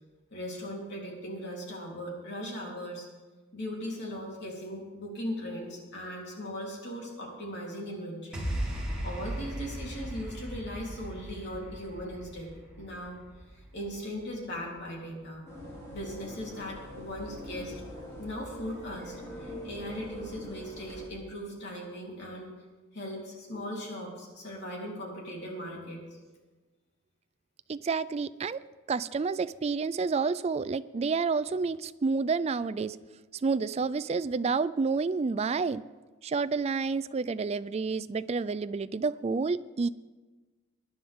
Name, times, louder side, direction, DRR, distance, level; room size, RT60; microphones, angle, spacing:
voice 1, 0.3-3.1 3.5-8.4 9.0-12.5 12.8-13.2 13.7-15.4 15.9-17.8 18.2-22.5 22.9-26.0, equal, 55° left, -2 dB, 3.5 m, -38 dB
sound 1, 8.3-14.8, equal, 5° right, 3.1 m, -38 dB
sound 2, 15.5-21.1, equal, 15° left, 4.3 m, -43 dB
voice 2, 27.7-28.6 28.9-33.0 33.4-35.8 36.2-39.9, right 4 dB, 30° right, 15 dB, 0.3 m, -29 dB
21.5 x 10.0 x 3.6 m, 1.3 s
head